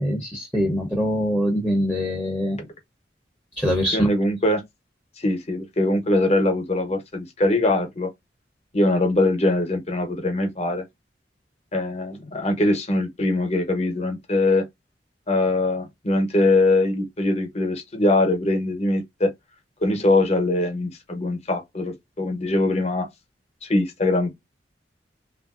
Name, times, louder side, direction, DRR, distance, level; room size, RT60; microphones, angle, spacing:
voice 1, 0.0-2.7 3.6-4.1, equal, 5° left, 0.7 m, -23 dB
voice 2, 3.9-4.6 5.2-8.1 8.7-10.8 11.7-14.6 15.3-19.3 19.8-23.1 23.6-24.3, left 2 dB, 35° left, 0.9 m, -22 dB
3.3 x 2.5 x 2.4 m
head